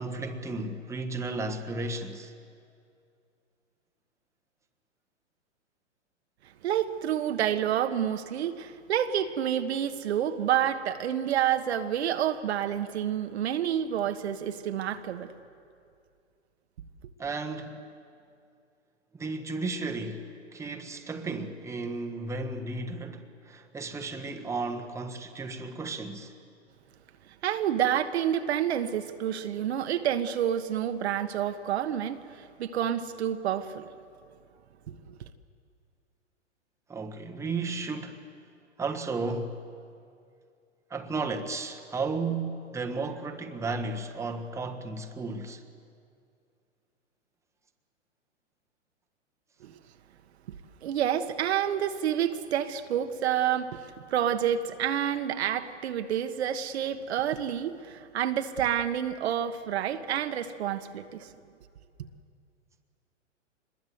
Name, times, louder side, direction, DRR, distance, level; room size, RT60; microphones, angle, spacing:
voice 1, 0.0-2.3 17.2-17.8 19.1-26.3 36.9-38.2 38.8-39.6 40.9-45.6, right 3 dB, 10° right, 1.4 m, -34 dB
voice 2, 6.6-15.3 27.4-33.8 35.1-35.2 49.6-49.7 50.8-53.8 54.1-61.3, right 10 dB, 60° right, 1.4 m, -28 dB
26.0 x 21.5 x 8.0 m
hypercardioid pair, 120°, 37 cm